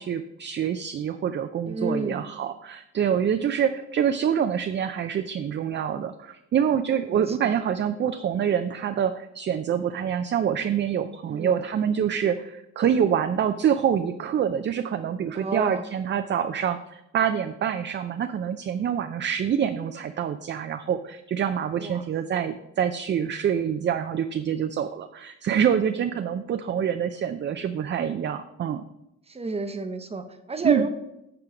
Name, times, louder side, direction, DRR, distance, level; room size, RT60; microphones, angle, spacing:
voice 1, 0.0-16.8 17.1-28.8 30.6-30.8, right 8 dB, 40° right, 9 dB, 0.4 m, -26 dB
voice 2, 1.7-2.2 7.1-7.6 11.3-11.6 15.3-15.9 21.8-22.0 29.3-30.9, right 3 dB, 20° right, 8 dB, 0.8 m, -30 dB
7.8 x 4.5 x 5.0 m, 0.86 s
cardioid pair, 90°, 30 cm